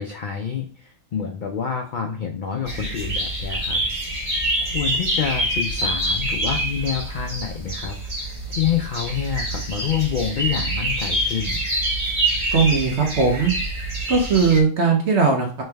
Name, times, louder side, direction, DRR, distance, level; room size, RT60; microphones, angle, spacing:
voice 1, 0.0-3.8 4.6-11.6, left 8 dB, 75° left, 2 dB, 0.4 m, -27 dB
sound 1, 2.7-14.6, right 1 dB, 30° right, 1.3 m, -26 dB
voice 2, 12.5-13.5 14.1-15.6, right 4 dB, 60° right, 1 dB, 0.9 m, -19 dB
3.3 x 3.1 x 3.3 m, 0.40 s
omnidirectional pair, 1.4 m